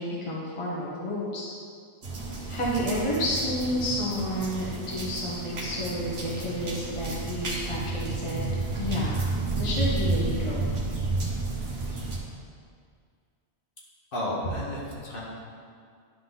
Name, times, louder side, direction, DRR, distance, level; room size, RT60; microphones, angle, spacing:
voice 1, 0.0-1.5 2.5-9.3 9.6-10.7, left 1 dB, 25° left, -6 dB, 1.2 m, -30 dB
sound 1, 2.0-12.2, right 3 dB, 65° right, 1.4 m, -31 dB
voice 2, 14.1-15.2, equal, 50° left, -6 dB, 1.5 m, -31 dB
10.5 x 3.8 x 4.0 m, 2.2 s
omnidirectional pair, 1.2 m